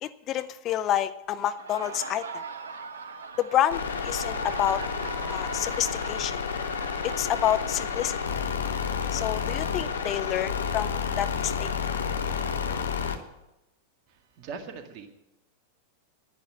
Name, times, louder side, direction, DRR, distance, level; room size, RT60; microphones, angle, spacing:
voice 1, 0.0-2.4 3.4-4.8 5.3-6.4 7.0-8.2 9.1-11.7, left 11 dB, 35° left, 13 dB, 0.5 m, -28 dB
Laughter, 1.4-9.0, right 5 dB, 65° right, 1.2 m, -41 dB
sound 1, 3.7-13.2, left 6 dB, 65° left, 1.3 m, -30 dB
voice 2, 14.1-15.1, right 5 dB, 40° right, 5 dB, 1.9 m, -41 dB
10.5 x 10.5 x 7.9 m, 0.92 s
figure-of-eight pair, 90°, 0 cm